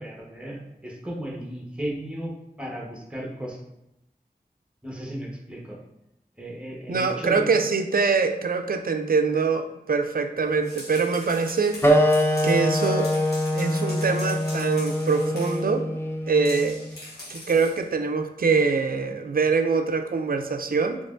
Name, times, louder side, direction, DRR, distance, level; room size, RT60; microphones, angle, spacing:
voice 1, 0.0-2.3 2.6-3.6 4.8-5.8 6.4-7.5, right 1 dB, 5° right, -3 dB, 1.0 m, -35 dB
voice 2, 6.9-11.8 12.4-13.1 13.5-15.9 16.3-16.8 17.3-21.0, right 4 dB, 65° right, 7 dB, 0.4 m, -24 dB
sound 1, 10.5-15.7 16.4-17.8, left 1 dB, 80° left, 1.2 m, -42 dB
sound 2, 11.8-16.9, equal, 15° left, 0.4 m, -24 dB
4.5 x 2.9 x 2.5 m, 0.85 s
wide cardioid pair, 55°, 16 cm